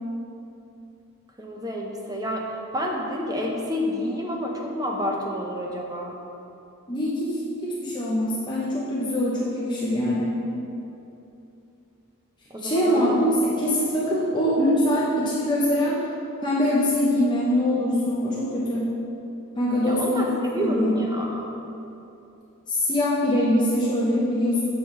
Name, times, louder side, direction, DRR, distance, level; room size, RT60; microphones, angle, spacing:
voice 1, 1.4-2.4 2.7-6.1 12.5-13.2 19.8-21.5, equal, 15° right, 0 dB, 0.7 m, -29 dB
voice 2, 6.9-10.4 12.6-16.0 16.4-18.8 19.6-20.3 20.6-21.0 22.7-24.6, left 1 dB, 20° left, -7 dB, 0.8 m, -23 dB
7.6 x 6.7 x 3.3 m, 2.8 s
head